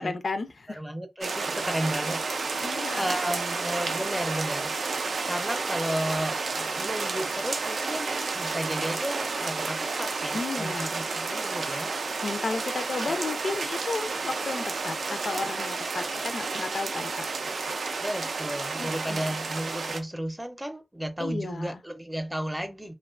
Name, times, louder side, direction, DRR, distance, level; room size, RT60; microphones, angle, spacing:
voice 1, 0.0-0.8 2.6-3.2 10.3-10.9 12.2-17.5 18.8-19.4 21.2-21.8, left 3 dB, 70° left, 0.3 m, -33 dB
voice 2, 0.7-2.7 3.0-4.7 5.2-12.0 13.1-13.2 18.0-22.9, right 1 dB, 10° right, 0.5 m, -33 dB
sound 1, 1.2-20.0, right 4 dB, 85° right, 0.3 m, -31 dB
2.4 x 2.2 x 2.3 m
cardioid pair, 55°, 0 cm